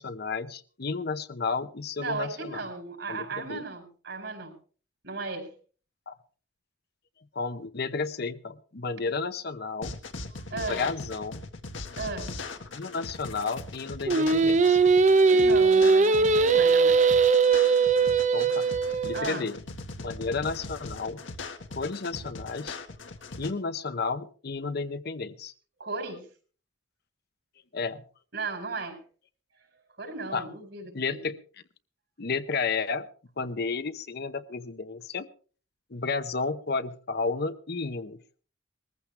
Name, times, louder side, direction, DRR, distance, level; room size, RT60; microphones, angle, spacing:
voice 1, 0.0-2.6 3.1-3.6 6.1-6.2 7.3-9.9 10.5-11.4 12.7-14.8 18.3-18.7 19.0-19.6 20.0-21.2 21.7-22.8 23.3-25.5 27.7-28.0 30.3-30.5 30.9-31.4 32.2-33.1 33.4-35.3 35.9-38.2, left 4 dB, 55° left, 11 dB, 0.9 m, -32 dB
voice 2, 2.0-4.6 5.0-5.5 10.5-10.8 12.0-12.3 15.3-17.1 19.1-19.5 25.8-26.2 28.3-29.0 30.0-31.2, right 3 dB, 65° right, 5 dB, 4.8 m, -35 dB
sound 1, 9.8-23.5, left 3 dB, 90° left, 1.6 m, -40 dB
Singing, 14.1-19.2, right 4 dB, 40° right, 0.6 m, -20 dB
20.0 x 14.5 x 3.3 m, 0.41 s
head